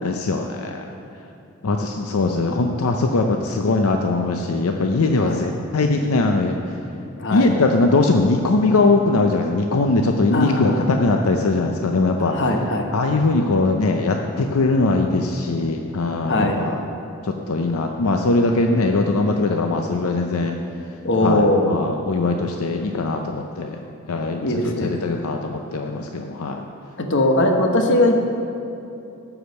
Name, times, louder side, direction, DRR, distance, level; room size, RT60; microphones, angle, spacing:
voice 1, 0.0-0.8 1.6-6.6 7.3-12.4 12.9-16.8 17.2-20.6 21.2-23.8 24.1-26.6, left 3 dB, 85° left, 3 dB, 0.6 m, -21 dB
voice 2, 7.2-7.5 10.3-10.9 12.3-12.9 16.3-16.6 21.0-21.8 24.4-25.0 27.0-28.3, left 1 dB, 55° left, 3 dB, 1.1 m, -19 dB
13.0 x 5.0 x 6.5 m, 2.8 s
head